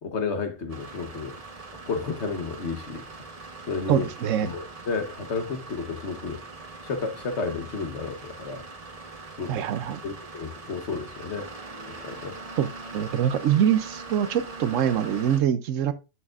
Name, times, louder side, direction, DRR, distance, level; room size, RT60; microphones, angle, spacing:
voice 1, 0.0-1.4 1.9-3.1 3.7-4.1 4.4-6.4 6.8-8.6 9.4-9.6 10.0-11.5 11.9-12.4, left 4 dB, 65° left, 1.4 m, -32 dB
sound 1, 0.7-15.4, right 3 dB, 30° right, 1.0 m, -42 dB
voice 2, 3.9-4.5 9.5-10.0 12.6-12.7 12.9-15.9, right 9 dB, 85° right, 1.1 m, -24 dB
8.7 x 6.9 x 2.5 m
omnidirectional pair, 1.3 m